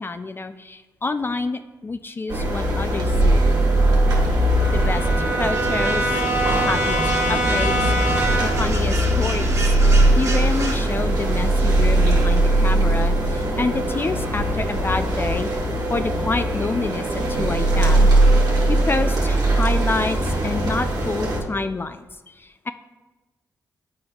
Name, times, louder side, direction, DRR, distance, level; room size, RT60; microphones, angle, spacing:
voice 1, 0.0-3.5 4.7-5.1 5.4-6.2 6.5-9.8 10.2-15.5 15.9-18.1 18.7-22.7, left 3 dB, 30° left, 10 dB, 0.3 m, -28 dB
sound 1, 2.3-21.4, right 1 dB, 70° right, 1.4 m, -20 dB
Brass instrument, 3.2-8.7, right 1 dB, 30° right, 1.2 m, -25 dB
sound 2, 5.5-10.7, right 2 dB, 50° right, 1.9 m, -33 dB
8.6 x 5.2 x 2.3 m, 1.2 s
cardioid pair, 60°, 7 cm